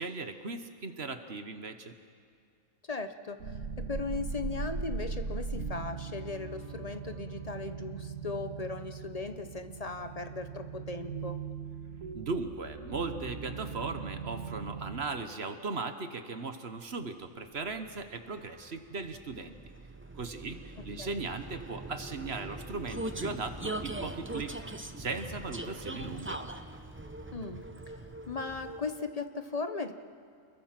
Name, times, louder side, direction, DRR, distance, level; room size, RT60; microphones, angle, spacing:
voice 1, 0.0-1.9 12.1-19.6 20.1-24.5 25.0-26.4, right 3 dB, 50° right, 8 dB, 1.3 m, -38 dB
voice 2, 2.9-11.4 20.8-21.2 27.3-28.0 28.3-29.9, left 4 dB, 30° left, 8 dB, 0.8 m, -38 dB
sound 1, 3.4-15.1, right 5 dB, 65° right, 2.0 m, -39 dB
Vehicle, 17.4-29.1, right 1 dB, 10° right, 0.6 m, -42 dB
29.0 x 22.0 x 5.9 m, 2.4 s
omnidirectional pair, 1.5 m